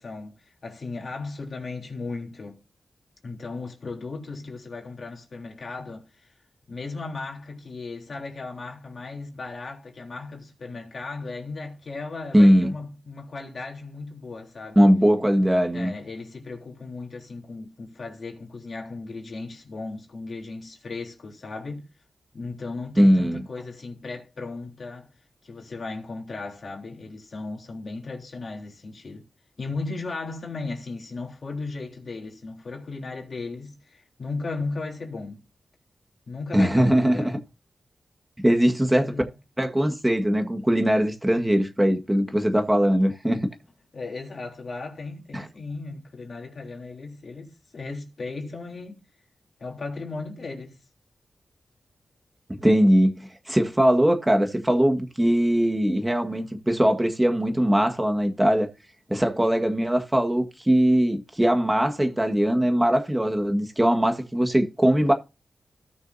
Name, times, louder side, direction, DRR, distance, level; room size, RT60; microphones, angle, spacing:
voice 1, 0.0-2.6 3.2-6.3 6.7-14.9 15.4-15.5 15.7-21.9 22.3-25.1 25.4-29.3 29.6-35.4 36.3-37.3 39.0-39.3 43.9-49.0 49.6-50.8, left 3 dB, 55° left, 3.4 m, -36 dB
voice 2, 12.3-12.7 14.7-15.9 23.0-23.4 36.5-37.4 38.4-39.1 39.6-43.5 45.3-45.4 52.6-58.7 59.1-65.1, equal, 10° right, 1.6 m, -21 dB
17.5 x 6.4 x 2.7 m
wide cardioid pair, 90°, 0 cm